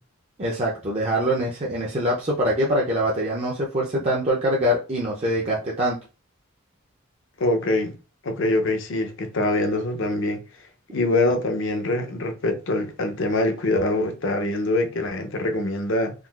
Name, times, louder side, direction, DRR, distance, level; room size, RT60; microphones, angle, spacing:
voice 1, 0.4-6.0, equal, 30° right, 0.5 m, -24 dB
voice 2, 7.4-8.0 8.2-10.4 10.9-16.1, left 2 dB, 55° left, 0.5 m, -24 dB
3.7 x 2.4 x 2.3 m
head